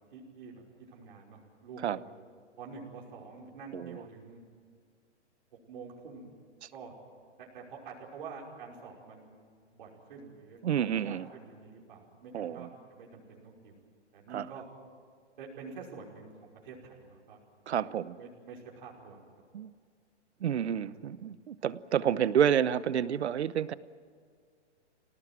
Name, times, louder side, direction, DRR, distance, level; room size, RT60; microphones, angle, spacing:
voice 1, 0.1-0.6 0.9-2.1 2.6-4.4 5.7-6.3 6.7-6.9 7.4-9.4 9.7-13.8 14.1-14.6 15.4-17.4 17.8-19.2 20.6-21.1, right 5 dB, 45° right, -3 dB, 5.6 m, -47 dB
voice 2, 3.7-4.0 6.6-6.7 10.6-11.3 12.3-12.7 14.3-14.5 17.7-18.2 19.5-19.7 20.4-23.7, right 9 dB, 65° right, 17 dB, 1.0 m, -29 dB
27.0 x 18.5 x 9.1 m, 2.1 s
hypercardioid pair, 170°, 35 cm